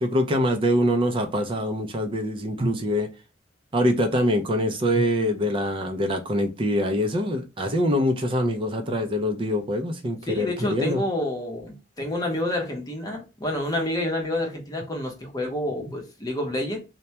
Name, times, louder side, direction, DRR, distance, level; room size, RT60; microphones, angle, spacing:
voice 1, 0.0-3.1 3.7-11.0, equal, 30° right, 0.4 m, -24 dB
voice 2, 10.3-16.8, left 1 dB, 20° left, 0.7 m, -28 dB
2.2 x 2.1 x 2.7 m
head